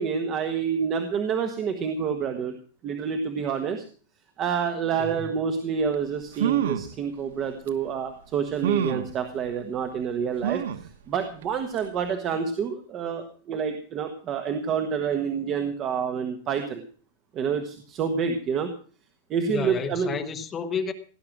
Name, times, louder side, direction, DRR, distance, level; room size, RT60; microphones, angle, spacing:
voice 1, 0.0-2.5 2.8-3.8 4.4-16.8 17.3-18.7 19.3-20.2, right 6 dB, 25° right, 1.2 m, -28 dB
voice 2, 5.0-5.3 19.5-20.9, left 6 dB, 15° left, 1.1 m, -31 dB
sound 1, 5.9-6.0 6.3-6.9 7.7-7.8 8.6-9.1 10.4-10.9 11.4-11.5 11.8-11.9, right 9 dB, 85° right, 1.2 m, -27 dB
17.0 x 10.5 x 6.0 m
supercardioid pair, 175°, 0 cm